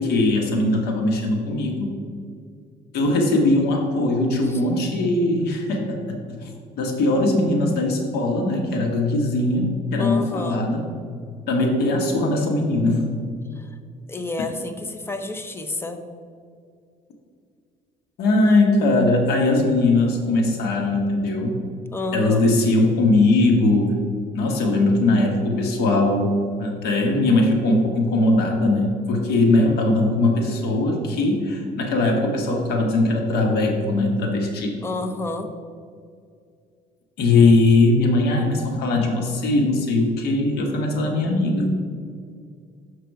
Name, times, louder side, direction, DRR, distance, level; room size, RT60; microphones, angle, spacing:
voice 1, 0.0-2.0 2.9-6.5 6.8-10.8 11.5-13.0 18.2-21.6 22.1-23.9 24.3-34.8 37.2-41.7, left 2 dB, 75° left, 1 dB, 1.1 m, -20 dB
voice 2, 10.0-10.7 13.5-13.7 14.1-16.0 21.9-22.5 34.8-35.5, left 2 dB, 15° left, 7 dB, 0.6 m, -29 dB
6.3 x 4.7 x 4.6 m, 2.2 s
cardioid pair, 110°, 17 cm